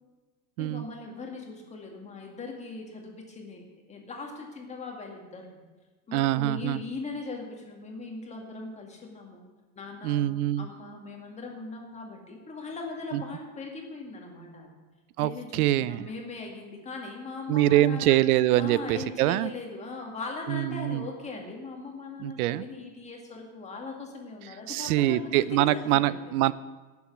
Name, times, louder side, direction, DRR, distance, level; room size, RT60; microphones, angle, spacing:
voice 1, 0.6-5.5 6.1-9.4 9.8-14.7 15.2-18.2 18.6-26.4, left 3 dB, 15° left, 1 dB, 2.0 m, -40 dB
voice 2, 6.1-6.8 10.0-10.7 13.1-13.2 15.2-16.1 17.5-19.5 20.5-21.1 22.2-22.6 24.7-26.5, right 14 dB, 70° right, 18 dB, 0.7 m, -24 dB
18.0 x 7.2 x 6.1 m, 1.3 s
supercardioid pair, 160°, 46 cm